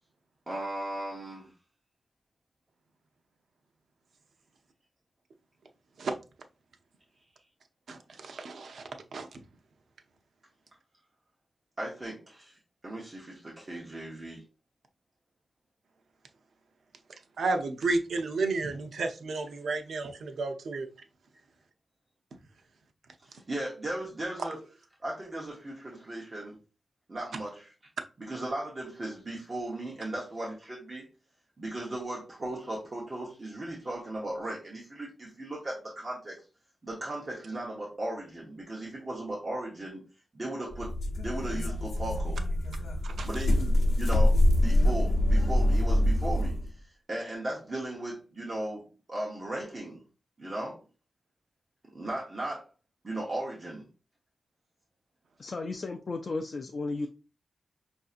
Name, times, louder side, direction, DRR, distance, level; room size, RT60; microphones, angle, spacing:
voice 1, 0.5-1.5 11.8-12.6 12.8-14.4 23.2-24.6 25.0-26.6 27.1-27.7 28.2-31.1 31.6-36.4 36.8-40.1 40.3-41.0 41.2-42.4 43.2-50.0 50.4-50.8 51.9-52.7 53.0-53.9, right 1 dB, 30° right, 1.0 m, -37 dB
voice 2, 7.9-8.8 9.1-9.3 17.4-20.9 43.0-43.3, right 3 dB, 85° right, 0.6 m, -32 dB
sound 1, 40.7-46.7, left 1 dB, 80° left, 0.7 m, -25 dB
voice 3, 55.4-57.1, left 3 dB, 45° left, 0.4 m, -34 dB
5.6 x 2.6 x 2.5 m
wide cardioid pair, 140°, 0 cm